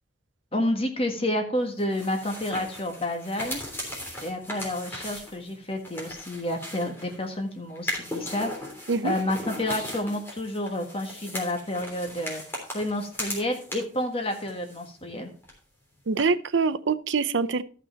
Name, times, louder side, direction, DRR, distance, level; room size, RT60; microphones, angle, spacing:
voice 1, 0.5-3.6 4.2-8.5 9.0-12.4 12.7-15.3, left 1 dB, 30° left, 1.7 m, -29 dB
sound 1, 1.8-7.3 7.7-14.0 14.3-15.2 15.4-15.5 16.2-16.3, left 1 dB, 10° left, 3.3 m, -37 dB
voice 2, 16.1-17.6, right 4 dB, 80° right, 0.6 m, -24 dB
13.0 x 5.9 x 4.5 m
head